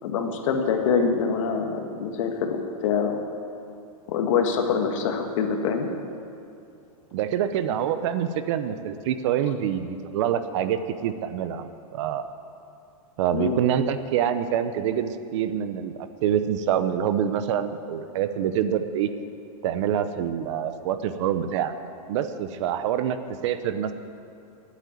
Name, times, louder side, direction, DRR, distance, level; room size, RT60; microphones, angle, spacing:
voice 1, 0.0-3.2 4.1-5.9 13.3-13.6, left 6 dB, 55° left, 4 dB, 1.7 m, -25 dB
voice 2, 7.1-12.2 13.2-19.1 19.6-21.7 22.1-23.2 23.4-23.9, right 9 dB, 50° right, 11 dB, 0.7 m, -26 dB
11.0 x 8.2 x 9.2 m, 2.6 s
supercardioid pair, 150°, 19 cm